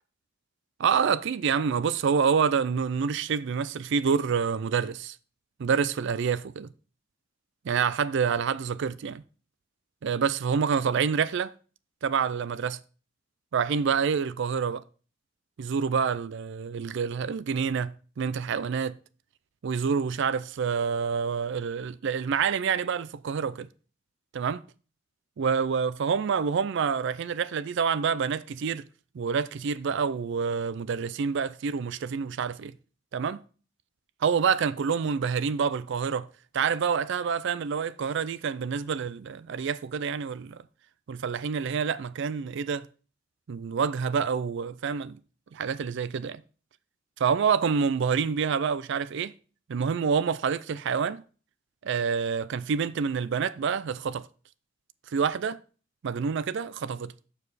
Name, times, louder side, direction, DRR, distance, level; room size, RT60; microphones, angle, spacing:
voice 1, 0.8-5.2 5.6-6.7 7.6-9.2 10.0-11.5 12.0-12.8 13.5-14.8 15.6-19.0 19.6-23.7 24.3-24.6 25.4-28.8 29.1-32.7 33.1-33.4 34.2-36.3 36.5-40.6 41.1-42.9 43.5-45.2 45.5-46.4 47.2-49.3 49.7-51.2 51.8-54.3 55.1-55.6 56.0-57.1, right 6 dB, 65° right, 0.4 m, -27 dB
7.1 x 6.7 x 4.1 m
head